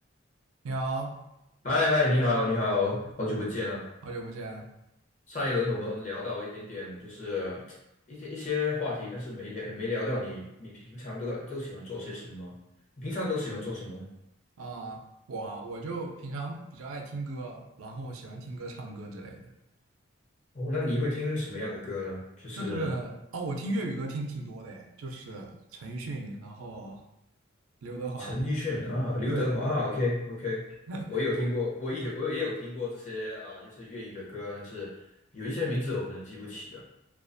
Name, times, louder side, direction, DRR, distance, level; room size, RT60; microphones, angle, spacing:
voice 1, 0.6-1.2 4.0-4.7 14.6-15.0 15.3-19.5 22.5-27.0 27.8-28.4 29.3-29.7 30.9-31.1, right 2 dB, 90° right, 2 dB, 0.4 m, -36 dB
voice 2, 1.6-3.8 5.3-7.6 8.1-12.5 13.0-14.1 20.5-22.9 28.2-30.6 31.1-34.9 35.3-36.8, left 2 dB, 35° left, -5 dB, 0.7 m, -31 dB
2.4 x 2.2 x 2.5 m, 0.89 s
head